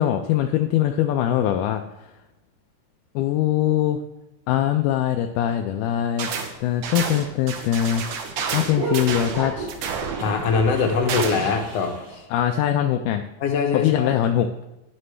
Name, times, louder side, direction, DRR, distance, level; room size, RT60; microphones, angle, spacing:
voice 1, 0.0-2.1 3.2-4.0 4.5-6.3 6.6-8.0 8.5-9.7 12.3-13.2 13.7-14.5, left 11 dB, 80° left, 5 dB, 2.0 m, -22 dB
sound 1, 6.2-6.5 6.8-11.6, right 6 dB, 80° right, 2.5 m, -30 dB
sound 2, 6.6-12.2, right 3 dB, 55° right, 3.5 m, -35 dB
voice 2, 10.2-12.2 13.4-14.1, left 5 dB, 65° left, 4 dB, 1.8 m, -23 dB
11.0 x 10.0 x 3.3 m, 0.93 s
omnidirectional pair, 3.7 m